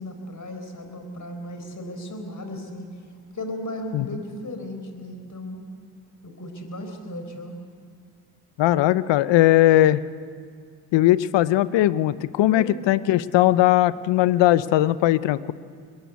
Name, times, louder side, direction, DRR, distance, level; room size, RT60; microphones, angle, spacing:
voice 1, 0.0-2.9 3.3-5.6 6.2-7.5 12.4-12.7, left 1 dB, 45° left, 5 dB, 4.3 m, -35 dB
voice 2, 8.6-10.0 10.9-15.5, left 14 dB, 80° left, 17 dB, 0.7 m, -19 dB
21.0 x 20.0 x 8.2 m, 2.1 s
supercardioid pair, 50°, 43 cm